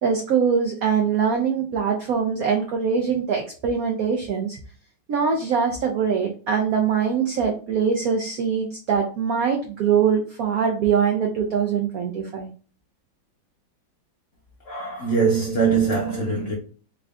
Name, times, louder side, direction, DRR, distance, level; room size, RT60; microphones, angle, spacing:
voice 1, 0.0-4.6 5.1-12.5, right 6 dB, 85° right, 0.7 m, -23 dB
voice 2, 14.7-16.5, right 5 dB, 60° left, 0.8 m, -22 dB
3.6 x 2.5 x 3.3 m
omnidirectional pair, 2.2 m